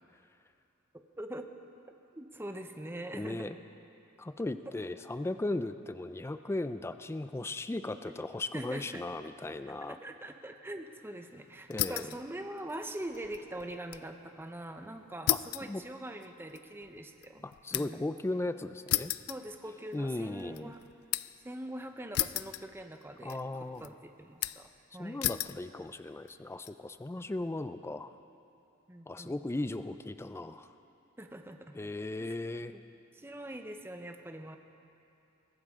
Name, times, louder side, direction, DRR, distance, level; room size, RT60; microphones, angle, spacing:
voice 1, 0.9-1.5 2.1-3.6 8.5-9.0 9.6-17.4 17.7-18.0 19.3-20.8 21.4-25.2 28.9-29.4 31.2-31.9 32.2-32.4 32.7-32.8 33.1-34.6, right 1 dB, 10° right, 6 dB, 0.7 m, -43 dB
voice 2, 3.2-3.6 4.2-10.0 11.7-12.1 15.3-15.8 17.4-19.1 19.9-20.7 23.2-23.9 25.0-28.1 29.1-30.7 31.7-32.7, left 2 dB, 10° left, 11 dB, 0.3 m, -37 dB
sound 1, 11.7-12.2 12.6-14.1 14.4-14.5 15.3-18.1 18.9-20.0 20.4-21.4 22.1-23.0 23.3-23.9 24.4-24.8 25.2-25.6 26.3-26.7, left 16 dB, 90° left, 0.4 m, -34 dB
22.5 x 15.0 x 3.6 m, 2.8 s
head